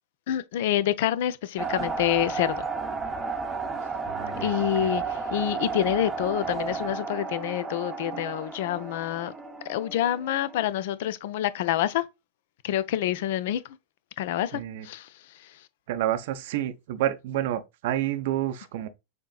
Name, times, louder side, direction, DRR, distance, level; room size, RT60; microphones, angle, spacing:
voice 1, 0.3-2.7 4.4-9.3 9.7-12.0 12.6-13.8 14.2-15.6, left 12 dB, 55° left, 0.4 m, -27 dB
sound 1, 1.6-10.7, right 4 dB, 10° right, 0.8 m, -33 dB
voice 2, 4.1-4.9 14.5-14.9 15.9-18.9, right 12 dB, 50° right, 0.6 m, -29 dB
6.6 x 2.8 x 2.3 m
figure-of-eight pair, 90°, 0 cm